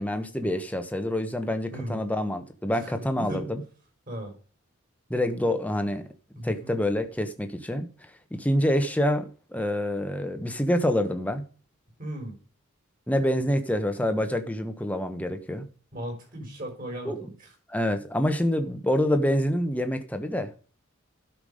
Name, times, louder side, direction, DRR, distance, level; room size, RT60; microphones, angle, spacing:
voice 1, 0.0-3.6 5.1-6.1 6.4-7.9 8.4-11.4 13.1-15.7 17.0-17.3 17.7-20.6, left 1 dB, 5° left, 1.1 m, -26 dB
voice 2, 1.7-2.1 2.8-3.4 4.1-4.3 6.4-6.7 12.0-12.3 15.9-17.5, right 1 dB, 40° right, 5.4 m, -37 dB
12.5 x 6.0 x 5.0 m
head